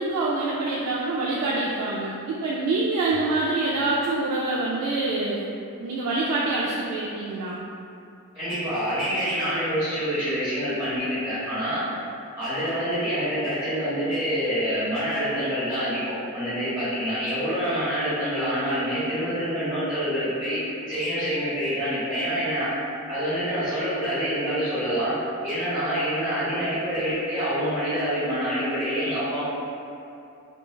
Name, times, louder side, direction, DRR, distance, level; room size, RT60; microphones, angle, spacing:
voice 1, 0.0-5.5 5.8-7.6, right 2 dB, 90° right, -4 dB, 0.3 m, -26 dB
voice 2, 8.3-11.8 12.4-20.6 20.9-22.7 23.1-25.1 25.4-29.4, equal, 25° right, -16 dB, 1.2 m, -26 dB
3.1 x 2.2 x 2.2 m, 2.6 s
head